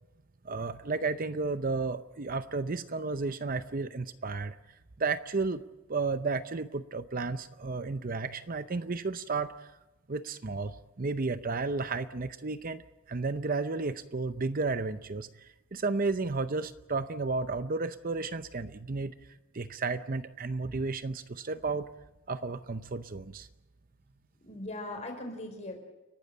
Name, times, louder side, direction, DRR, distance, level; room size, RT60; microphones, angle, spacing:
voice 1, 0.4-4.6 5.0-5.6 5.9-9.7 10.1-19.1 19.5-21.9 22.3-23.5, right 3 dB, 40° right, 12 dB, 0.7 m, -33 dB
voice 2, 24.4-25.8, left 1 dB, 30° left, 4 dB, 4.7 m, -40 dB
30.0 x 12.0 x 8.9 m, 1.0 s
head